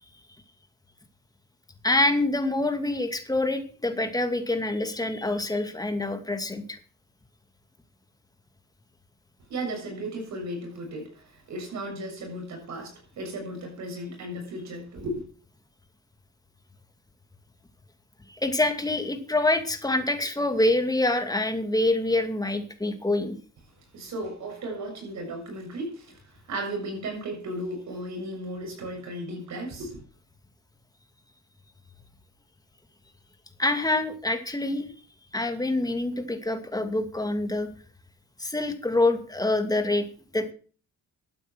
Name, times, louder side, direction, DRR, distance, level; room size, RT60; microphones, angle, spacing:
voice 1, 1.8-6.8 18.3-23.4 33.6-34.9 35.3-37.7 38.4-40.1 40.3-40.5, left 2 dB, 10° left, 2.4 m, -26 dB
voice 2, 9.5-15.2 23.9-30.0, right 1 dB, 65° right, 7.2 m, -35 dB
12.5 x 8.9 x 6.2 m
cardioid pair, 90°, 30 cm